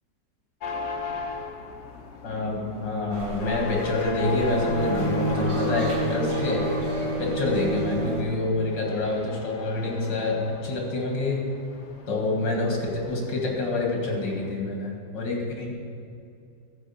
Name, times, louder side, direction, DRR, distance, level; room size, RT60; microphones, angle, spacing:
sound 1, 0.6-14.5, left 3 dB, 50° left, 0.9 m, -37 dB
voice 1, 2.2-6.6 7.2-11.4 12.1-15.7, left 2 dB, 80° left, 0 dB, 2.7 m, -27 dB
sound 2, 3.1-8.2, right 1 dB, 40° right, 2.1 m, -36 dB
Bowed string instrument, 4.5-8.4, right 2 dB, 75° right, 1.8 m, -29 dB
13.5 x 4.9 x 7.1 m, 2.5 s
omnidirectional pair, 1.9 m